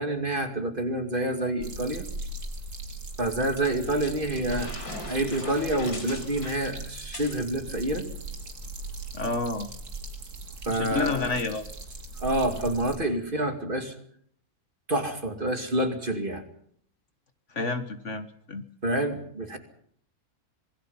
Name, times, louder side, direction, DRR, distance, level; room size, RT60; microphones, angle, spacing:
voice 1, 0.0-2.0 3.2-4.7 5.0-8.1 10.7-11.3 12.2-13.9 14.9-16.4 18.8-19.6, right 1 dB, 35° right, 5 dB, 2.6 m, -28 dB
sound 1, 1.6-13.0, right 2 dB, 80° right, 3.1 m, -39 dB
sound 2, 3.6-7.5, left 2 dB, 80° left, 4.8 m, -41 dB
voice 2, 9.1-9.7 10.7-11.7 17.5-18.6, left 3 dB, 55° left, 8 dB, 1.8 m, -30 dB
26.5 x 21.0 x 5.6 m, 0.66 s
omnidirectional pair, 1.6 m